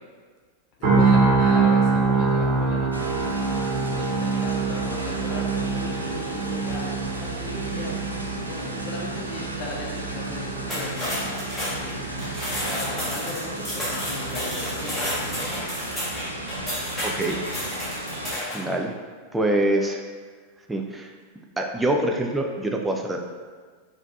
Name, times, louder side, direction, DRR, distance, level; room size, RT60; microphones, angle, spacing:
voice 1, 0.8-3.1 4.0-12.0 12.5-15.6, left 2 dB, 40° left, -2 dB, 0.8 m, -37 dB
sound 1, 0.8-14.8 15.2-15.4, right 4 dB, 40° right, 1.3 m, -25 dB
sound 2, 2.9-18.3, right 1 dB, 85° right, 0.4 m, -35 dB
sound 3, 10.7-18.7, equal, 10° left, 1.3 m, -31 dB
voice 2, 17.0-17.4 18.5-18.9 19.3-20.0 20.7-21.1 21.6-23.2, right 1 dB, 10° right, 2 dB, 0.4 m, -25 dB
5.1 x 2.6 x 2.5 m, 1.5 s
figure-of-eight pair, 90°, 0 cm